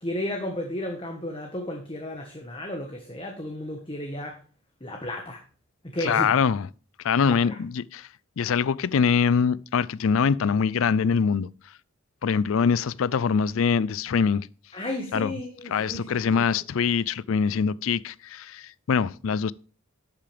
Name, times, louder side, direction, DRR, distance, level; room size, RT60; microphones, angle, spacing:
voice 1, 0.0-4.4 4.8-5.4 5.8-6.4 7.2-7.5 14.7-16.5, left 1 dB, 25° left, 1.4 m, -33 dB
voice 2, 6.0-6.7 7.0-8.1 8.4-11.5 12.2-14.5 15.1-15.3 15.7-19.5, left 6 dB, 65° left, 0.4 m, -23 dB
11.5 x 8.5 x 3.4 m
head